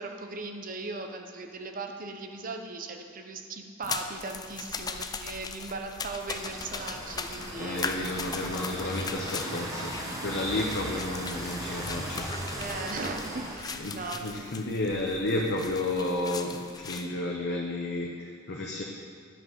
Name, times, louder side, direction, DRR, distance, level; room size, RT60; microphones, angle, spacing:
voice 1, 0.0-7.9 12.5-14.6, right 3 dB, 40° right, 4 dB, 0.7 m, -38 dB
sound 1, 3.8-17.1, left 5 dB, 20° left, 0.3 m, -39 dB
sound 2, 6.3-13.6, right 1 dB, 15° right, 1.1 m, -37 dB
voice 2, 7.6-9.9 10.2-12.3 13.8-18.8, left 2 dB, 55° left, -1 dB, 0.7 m, -32 dB
10.5 x 5.6 x 5.5 m, 2.2 s
head